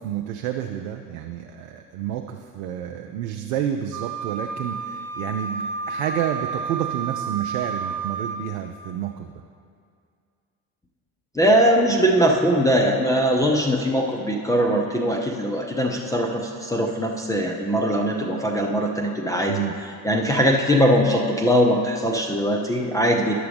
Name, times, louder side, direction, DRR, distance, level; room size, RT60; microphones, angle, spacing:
voice 1, 0.0-9.3 19.5-19.7, right 10 dB, 60° right, 4 dB, 0.5 m, -29 dB
Wind instrument woodwind instrument, 3.9-8.4, right 5 dB, 35° right, 1.2 m, -31 dB
voice 2, 11.3-19.6 20.0-23.4, equal, 10° left, -1 dB, 0.5 m, -21 dB
11.0 x 6.8 x 3.4 m, 2.2 s
figure-of-eight pair, 55°, 45 cm